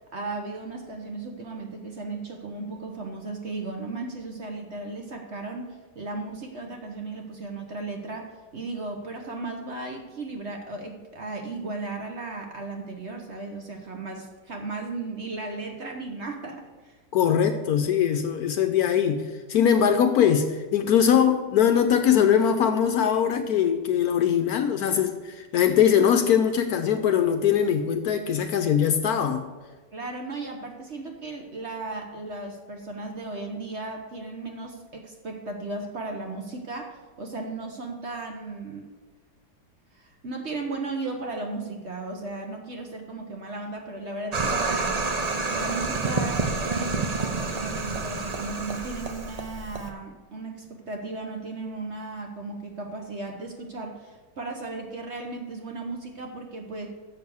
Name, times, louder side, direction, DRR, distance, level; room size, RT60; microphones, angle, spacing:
voice 1, 0.1-17.0 29.9-38.9 39.9-56.9, right 3 dB, 45° right, 3 dB, 1.0 m, -36 dB
voice 2, 17.1-29.4, left 8 dB, 70° left, 7 dB, 1.0 m, -21 dB
sound 1, 44.3-49.9, right 3 dB, 85° right, 0.3 m, -28 dB
6.9 x 6.4 x 7.0 m, 1.3 s
omnidirectional pair, 1.9 m